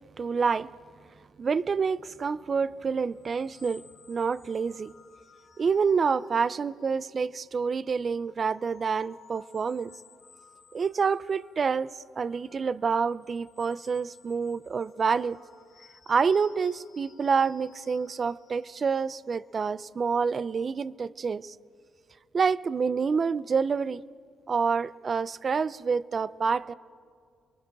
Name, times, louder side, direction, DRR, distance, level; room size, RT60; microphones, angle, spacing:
voice 1, 0.2-0.7 1.4-4.9 5.6-9.9 10.7-15.4 16.1-21.6 22.3-24.0 24.5-26.7, right 5 dB, 40° right, 0.6 m, -27 dB
sound 1, 2.3-7.5 8.0-20.3, left 6 dB, 65° left, 4.3 m, -58 dB
28.5 x 22.0 x 6.2 m
cardioid pair, 90°, 0 cm